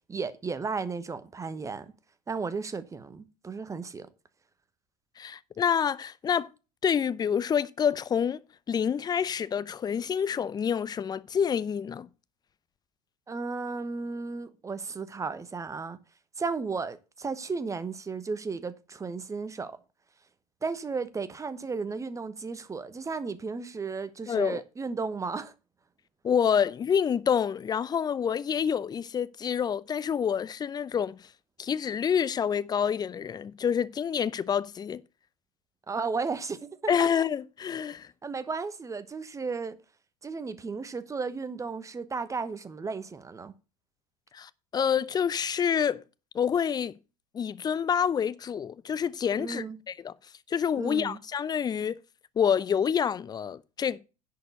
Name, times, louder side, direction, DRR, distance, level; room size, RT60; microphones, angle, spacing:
voice 1, 0.1-1.9 2.3-4.1 13.3-16.0 16.4-19.8 20.6-25.5 35.9-36.9 38.2-39.8 40.2-43.5 49.4-49.8 50.8-51.2, right 4 dB, 15° right, 1.1 m, -34 dB
voice 2, 5.2-6.5 6.8-8.4 8.7-12.1 24.3-24.6 26.2-31.2 31.6-35.0 36.9-38.1 44.3-46.0 46.3-47.0 47.3-50.1 50.5-52.0 52.4-54.0, left 7 dB, 20° left, 0.6 m, -27 dB
10.5 x 4.8 x 7.9 m
figure-of-eight pair, 80°, 21 cm